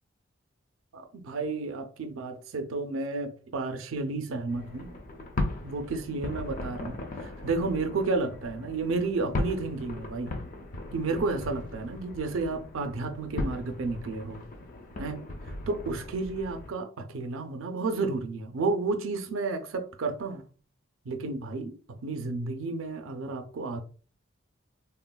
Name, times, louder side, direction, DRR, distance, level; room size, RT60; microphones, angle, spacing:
voice 1, 0.9-4.9 5.6-10.4 10.9-14.4 15.0-15.2 15.7-20.4 21.1-23.8, right 3 dB, 80° right, 0.4 m, -32 dB
sound 1, 4.5-16.7, left 1 dB, 40° left, 0.4 m, -38 dB
3.5 x 2.2 x 2.2 m
head